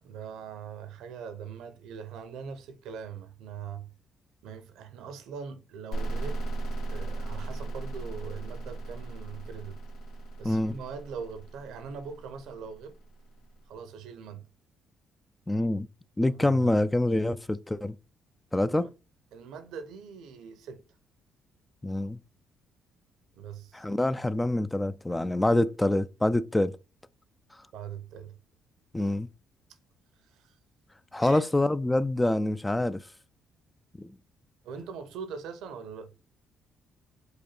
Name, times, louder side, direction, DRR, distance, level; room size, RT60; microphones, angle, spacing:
voice 1, 0.0-3.9 4.4-6.4 6.9-9.8 10.4-12.9 13.7-14.5 16.4-16.7 18.7-18.9 19.3-20.8 23.3-23.8 27.7-28.3 30.3-30.5 31.2-31.4 34.6-36.1, right 6 dB, 75° right, 0.6 m, -41 dB
sound 1, 5.9-13.5, right 2 dB, 75° left, 1.1 m, -37 dB
voice 2, 10.4-10.8 15.5-15.9 16.2-18.0 18.5-18.9 21.8-22.2 23.7-26.8 28.9-29.3 31.1-33.0 34.0-34.2, left 1 dB, 15° left, 0.3 m, -26 dB
4.9 x 2.2 x 4.3 m
supercardioid pair, 60°, 0 cm